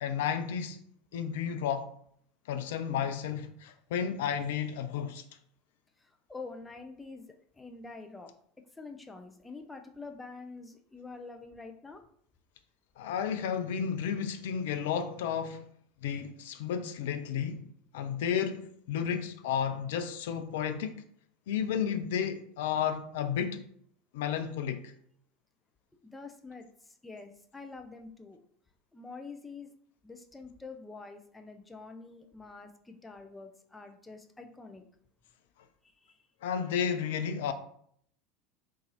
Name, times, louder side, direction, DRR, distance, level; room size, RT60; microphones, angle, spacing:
voice 1, 0.0-0.8 1.1-1.9 2.5-5.2 13.0-15.7 16.0-17.6 17.9-21.0 21.5-23.6 24.1-24.8 36.4-37.5, left 8 dB, 65° left, 0.4 m, -32 dB
voice 2, 6.0-7.2 7.5-8.3 8.7-12.0 26.0-28.4 28.9-29.7 30.0-34.8 35.8-36.2, left 3 dB, 10° left, 0.5 m, -46 dB
3.8 x 2.6 x 2.9 m
figure-of-eight pair, 75°, 0 cm